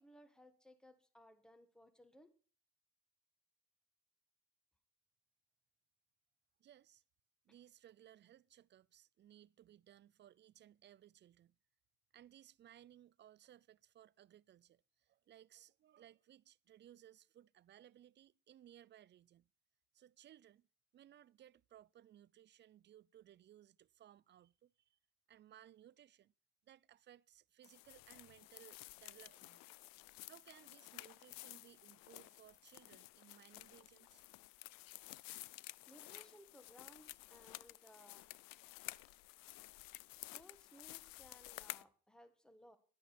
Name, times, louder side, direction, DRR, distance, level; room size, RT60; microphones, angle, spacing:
voice 1, 0.0-2.3 35.9-38.3 40.1-42.8, equal, ahead, 1.6 m, -62 dB
voice 2, 6.6-7.0 7.4-11.6 12.1-19.5 19.9-20.7 20.9-25.0 25.3-26.3 26.6-29.7 30.3-34.2, right 11 dB, 35° right, 0.4 m, -62 dB
sound 1, 27.6-41.8, left 20 dB, 75° left, 0.5 m, -53 dB
11.5 x 10.5 x 4.3 m
cardioid pair, 105°, 34 cm